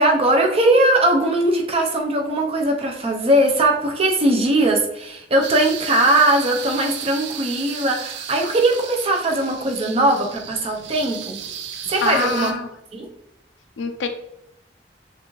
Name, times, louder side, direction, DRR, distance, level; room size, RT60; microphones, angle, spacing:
voice 1, 0.0-11.4 11.9-12.5 12.9-13.0, right 1 dB, 35° right, 2 dB, 0.8 m, -19 dB
sound 1, 5.4-12.5, right 8 dB, 70° right, 0.5 m, -34 dB
voice 2, 11.7-12.7 13.8-14.1, left 5 dB, 80° left, 7 dB, 0.5 m, -26 dB
6.0 x 2.5 x 3.1 m, 0.82 s
head